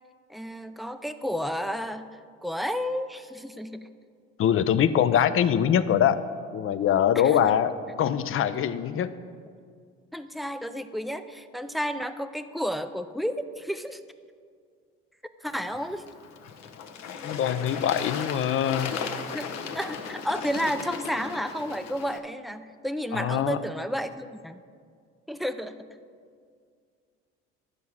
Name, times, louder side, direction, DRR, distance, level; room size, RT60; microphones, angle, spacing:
voice 1, 0.3-3.9 7.2-7.4 10.1-14.0 15.4-16.1 19.3-19.5 19.7-24.6 25.3-26.0, equal, ahead, 10 dB, 0.4 m, -32 dB
voice 2, 4.4-6.2 6.5-9.1 17.2-18.9 23.1-23.6, left 9 dB, 45° left, 13 dB, 0.6 m, -23 dB
Bird / Water, 15.5-22.2, left 6 dB, 65° left, 0.9 m, -37 dB
11.5 x 4.8 x 7.2 m, 2.1 s
supercardioid pair, 90°, 29 cm